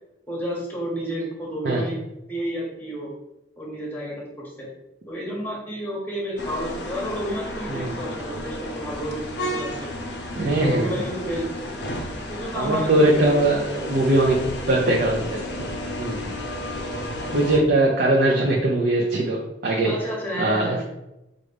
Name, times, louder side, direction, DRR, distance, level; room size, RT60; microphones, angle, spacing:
voice 1, 0.3-2.0 2.3-3.1 3.6-4.2 4.6-4.7 5.1-9.8 10.6-11.7 12.3-13.4 19.8-20.8, equal, 10° left, -3 dB, 1.0 m, -31 dB
sound 1, 6.4-17.6, left 1 dB, 65° left, 0.6 m, -32 dB
voice 2, 10.4-10.9 12.5-15.7 16.0-16.4 17.3-19.9 20.4-20.8, right 1 dB, 55° right, -2 dB, 0.6 m, -21 dB
4.6 x 2.6 x 3.3 m, 0.92 s
head